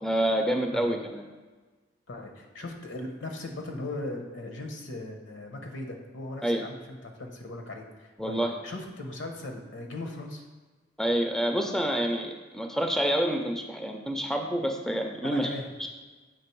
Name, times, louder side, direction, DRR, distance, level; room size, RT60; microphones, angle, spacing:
voice 1, 0.0-1.2 6.4-6.6 8.2-8.5 11.0-15.5 15.8-15.9, right 1 dB, ahead, 3 dB, 0.4 m, -27 dB
voice 2, 2.1-10.4 15.2-15.7, left 2 dB, 75° left, 3 dB, 0.9 m, -38 dB
6.8 x 3.3 x 4.5 m, 1.3 s
head